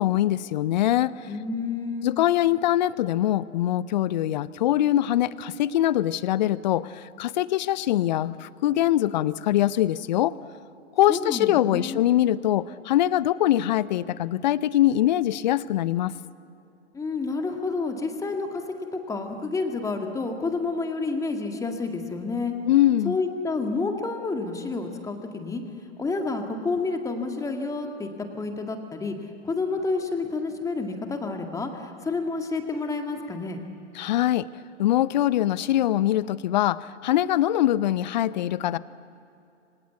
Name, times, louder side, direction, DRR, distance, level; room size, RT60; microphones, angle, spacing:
voice 1, 0.0-1.1 2.0-10.3 11.0-16.1 22.7-23.2 34.0-34.5 34.8-38.8, left 13 dB, 35° left, 18 dB, 0.7 m, -23 dB
voice 2, 1.3-2.1 11.1-12.0 16.9-18.6 19.1-22.5 23.0-25.6 26.0-28.1 28.3-29.2 29.4-33.6, left 3 dB, 10° left, 4 dB, 2.0 m, -29 dB
27.5 x 25.0 x 8.3 m, 2.7 s
figure-of-eight pair, 115°, 37 cm